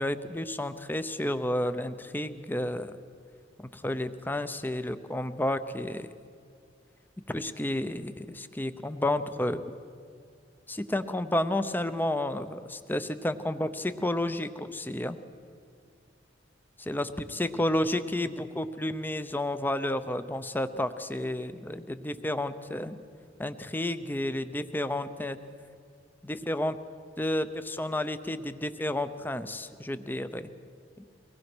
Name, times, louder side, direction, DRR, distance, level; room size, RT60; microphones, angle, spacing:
voice 1, 0.0-2.9 3.7-6.1 7.3-9.6 10.7-15.2 16.8-17.1 17.4-23.0 23.4-25.4 26.2-26.8 27.2-30.5, left 1 dB, 10° left, 11 dB, 0.7 m, -31 dB
24.0 x 19.0 x 6.2 m, 2.3 s
head